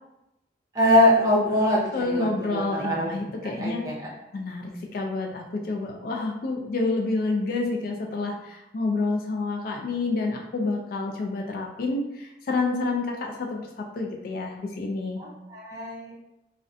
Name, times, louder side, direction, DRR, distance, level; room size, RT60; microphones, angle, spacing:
voice 1, 0.7-2.3 2.5-3.1 3.6-3.9 15.2-16.1, left 1 dB, 20° right, -6 dB, 0.7 m, -22 dB
voice 2, 1.9-3.8 4.3-15.2, left 3 dB, 55° left, 2 dB, 0.3 m, -28 dB
2.5 x 2.1 x 2.5 m, 0.90 s
head